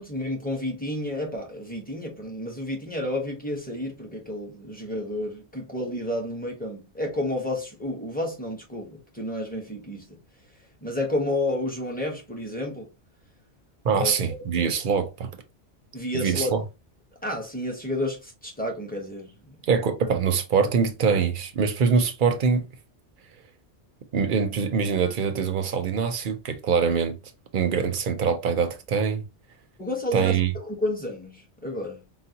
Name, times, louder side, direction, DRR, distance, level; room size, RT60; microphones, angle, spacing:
voice 1, 0.0-10.2 10.8-12.9 13.9-14.1 14.6-14.7 15.9-16.6 17.2-19.6 21.1-21.3 29.8-32.0, left 1 dB, 10° left, 0.8 m, -31 dB
voice 2, 13.8-15.3 16.2-16.6 19.7-22.7 24.1-27.2 27.5-29.2 30.1-30.5, right 6 dB, 55° right, 0.7 m, -24 dB
3.9 x 2.1 x 2.8 m
omnidirectional pair, 1.2 m